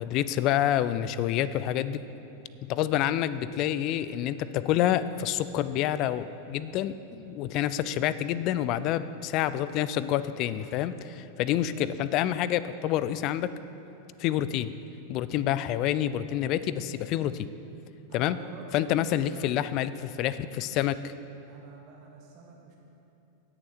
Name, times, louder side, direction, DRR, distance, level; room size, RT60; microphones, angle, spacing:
voice 1, 0.0-2.0 2.6-13.5 14.2-14.7 15.1-17.5 18.1-18.4 18.7-21.1, left 11 dB, 40° left, 15 dB, 0.4 m, -28 dB
voice 2, 11.7-12.1 18.1-19.5 21.5-22.8, right 4 dB, 40° right, -1 dB, 1.4 m, -48 dB
17.5 x 6.9 x 4.3 m, 2.9 s
figure-of-eight pair, 90°, 0 cm